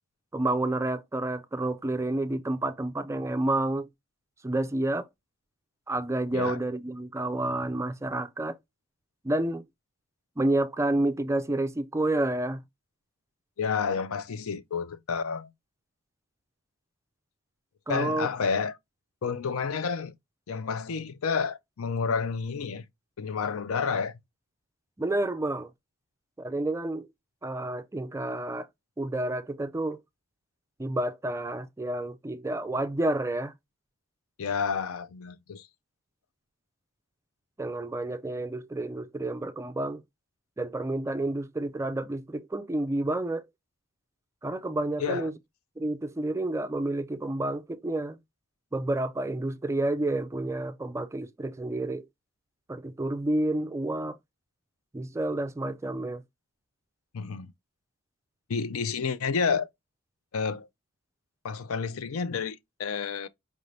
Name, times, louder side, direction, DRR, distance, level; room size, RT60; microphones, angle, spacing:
voice 1, 0.3-3.9 4.4-5.1 5.9-8.6 9.2-9.6 10.4-12.6 17.9-18.3 25.0-25.7 26.4-27.1 27.4-28.7 29.0-30.0 30.8-33.5 37.6-40.0 40.6-43.4 44.4-45.3 45.8-48.2 48.7-52.0 52.7-54.2 54.9-56.2, right 2 dB, 15° right, 0.3 m, -29 dB
voice 2, 13.6-15.5 17.9-18.7 19.2-20.1 20.5-22.9 23.2-24.1 34.4-35.7 45.0-45.3 57.1-57.5 58.5-59.7 60.3-60.7 61.4-63.3, left 5 dB, 75° left, 0.5 m, -30 dB
4.9 x 2.6 x 3.2 m
head